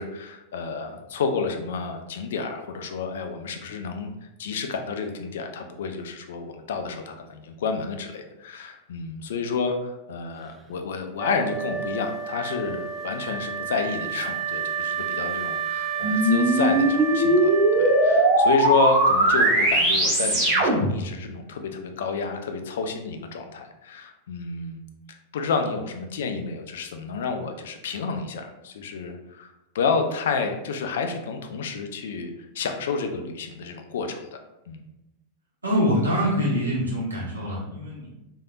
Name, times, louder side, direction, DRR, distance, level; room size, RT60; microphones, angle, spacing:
voice 1, 0.0-4.1 4.4-24.8 25.1-32.3 32.5-34.4 34.7-34.8, left 5 dB, 60° left, 6 dB, 0.4 m, -30 dB
Wind instrument woodwind instrument, 11.2-18.7, right 6 dB, 20° right, 0.3 m, -30 dB
sound 1, 16.0-21.0, right 1 dB, 40° right, 1.0 m, -20 dB
voice 2, 35.6-38.1, equal, 80° right, -5 dB, 1.1 m, -24 dB
3.3 x 2.7 x 2.3 m, 0.95 s
figure-of-eight pair, 90°, 0 cm